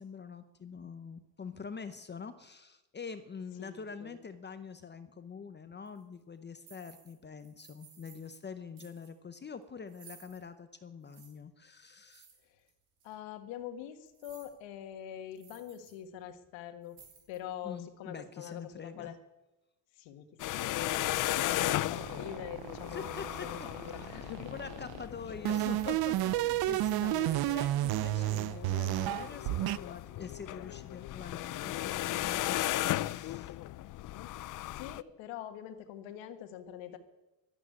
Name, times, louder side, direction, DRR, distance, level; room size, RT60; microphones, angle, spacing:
voice 1, 0.0-12.3 17.6-19.1 22.9-23.5 24.2-33.5, left 5 dB, 25° left, 10 dB, 0.8 m, -45 dB
voice 2, 3.6-4.2 13.0-17.0 17.3-19.2 19.9-24.5 27.1-27.6 34.0-34.3 34.7-37.0, left 9 dB, 90° left, 8 dB, 1.7 m, -44 dB
sound 1, 5.9-6.0 6.6-7.1 7.4-8.4 8.8-9.1 9.9-10.4 11.1-11.3 12.1-12.7 13.0-13.1 14.1-14.6 14.9-15.0 15.3-15.9 16.3-16.4 16.8-17.5, right 7 dB, 85° right, 4.6 m, -57 dB
sound 2, 20.4-35.0, left 15 dB, 45° left, 0.4 m, -36 dB
sound 3, 21.9-25.0 25.4-29.8, right 16 dB, 55° right, 0.6 m, -31 dB
12.0 x 11.0 x 9.7 m, 1.0 s
cardioid pair, 120°, 44 cm